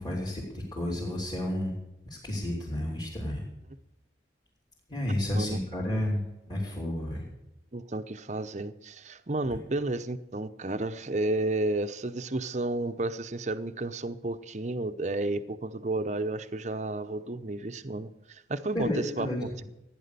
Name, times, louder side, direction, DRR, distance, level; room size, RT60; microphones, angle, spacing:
voice 1, 0.0-1.7 2.0-3.4 4.9-6.2 6.5-7.2 18.7-19.4, left 1 dB, 25° left, -5 dB, 3.7 m, -31 dB
voice 2, 7.7-19.6, right 2 dB, 40° right, 11 dB, 0.8 m, -32 dB
15.5 x 10.5 x 6.8 m, 0.94 s
head